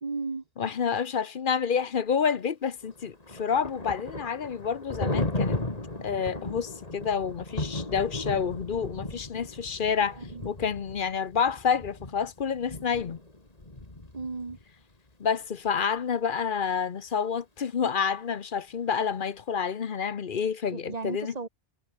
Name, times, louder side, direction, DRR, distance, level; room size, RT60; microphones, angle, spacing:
voice 1, 0.0-0.4 10.3-10.5 14.1-14.6 20.7-21.5, right 4 dB, 35° right, 1.5 m, -34 dB
voice 2, 0.6-5.6 6.0-13.2 15.2-21.3, left 6 dB, 45° left, 0.9 m, -29 dB
Thunder, 2.8-14.6, left 2 dB, 30° left, 3.0 m, -36 dB
omnidirectional pair, 1.3 m